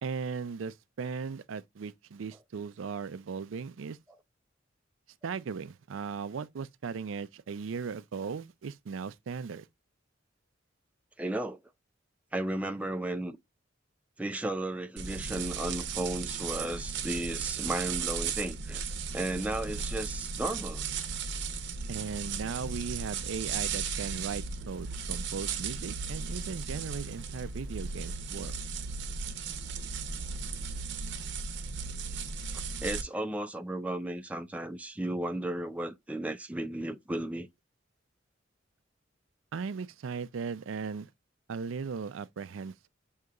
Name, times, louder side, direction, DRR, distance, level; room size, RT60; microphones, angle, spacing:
voice 1, 0.0-4.0 5.2-9.7 21.9-28.6 39.5-41.1 41.5-42.9, right 5 dB, 85° right, 0.4 m, -37 dB
voice 2, 11.2-11.6 12.3-13.4 14.2-18.9 19.1-20.8 32.8-37.5, right 1 dB, 5° right, 0.3 m, -34 dB
sound 1, 15.0-33.0, right 5 dB, 60° right, 0.8 m, -36 dB
6.4 x 2.8 x 2.3 m
head